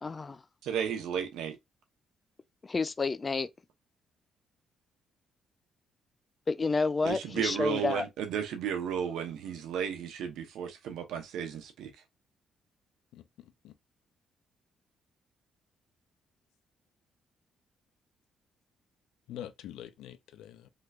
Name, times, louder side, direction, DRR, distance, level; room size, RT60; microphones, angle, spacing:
voice 1, 0.0-0.4 2.6-3.5 6.5-8.0, left 4 dB, 30° left, 0.4 m, -30 dB
voice 2, 0.6-1.6 7.0-11.9, right 8 dB, 85° right, 0.8 m, -33 dB
voice 3, 13.1-13.7 19.3-20.7, left 11 dB, 85° left, 0.5 m, -45 dB
3.3 x 3.0 x 2.4 m
cardioid pair, 90°, 0 cm